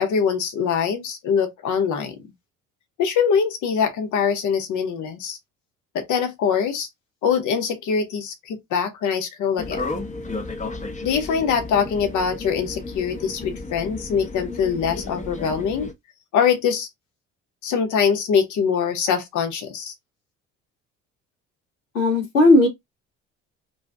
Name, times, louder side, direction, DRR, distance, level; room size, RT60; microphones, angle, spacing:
voice 1, 0.0-2.2 3.0-5.4 5.9-6.9 7.2-9.9 11.0-15.9 16.3-16.9 17.6-19.9, left 7 dB, 55° left, 0.9 m, -23 dB
sound 1, 9.6-15.9, left 3 dB, 20° left, 0.8 m, -33 dB
voice 2, 21.9-22.7, left 2 dB, 90° left, 1.1 m, -15 dB
2.7 x 2.3 x 3.3 m
hypercardioid pair, 55°, 37 cm